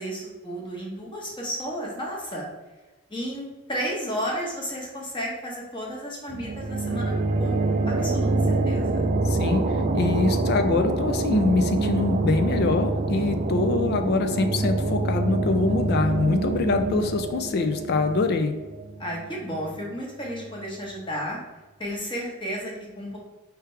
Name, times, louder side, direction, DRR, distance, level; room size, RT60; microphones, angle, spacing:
voice 1, 0.0-2.4 3.1-7.6 7.9-9.1 19.0-21.4 21.8-23.2, equal, 20° left, -3 dB, 1.1 m, -33 dB
sound 1, 6.3-19.7, right 2 dB, 35° right, 0.3 m, -26 dB
voice 2, 9.3-18.5, left 3 dB, 45° left, 7 dB, 0.3 m, -24 dB
4.6 x 3.3 x 3.2 m, 1.2 s
head